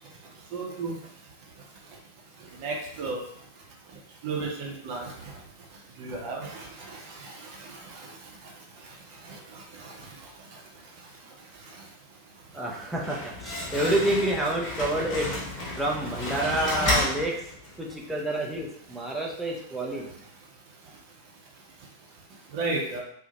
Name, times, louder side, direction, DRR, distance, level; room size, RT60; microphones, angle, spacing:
voice 1, 0.5-0.9 2.6-3.2 4.2-5.1 6.0-6.6 22.5-23.0, right 3 dB, 45° right, -1 dB, 0.7 m, -32 dB
voice 2, 12.5-15.3 15.8-17.3 17.8-20.1, right 1 dB, 5° right, -3 dB, 0.6 m, -28 dB
Slam, 12.8-17.9, left 1 dB, 35° left, 1.0 m, -31 dB
2.7 x 2.1 x 2.8 m, 0.67 s
figure-of-eight pair, 90°, 0 cm